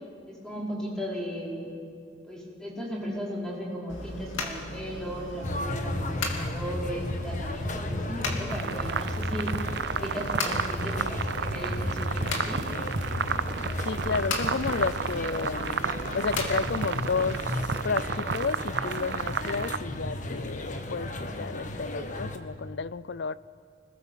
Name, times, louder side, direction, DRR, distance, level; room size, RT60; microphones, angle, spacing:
voice 1, 0.3-1.7 2.2-9.6 9.9-12.7, equal, 5° left, 4.8 m, -36 dB
sound 1, 3.9-17.4, left 2 dB, 90° left, 2.7 m, -37 dB
sound 2, 5.4-22.4, left 1 dB, 40° left, 1.5 m, -34 dB
sound 3, 8.5-19.8, right 6 dB, 60° right, 0.5 m, -32 dB
voice 2, 13.9-15.8 16.1-17.4 17.8-23.4, left 4 dB, 60° left, 0.5 m, -31 dB
26.0 x 20.0 x 7.3 m
head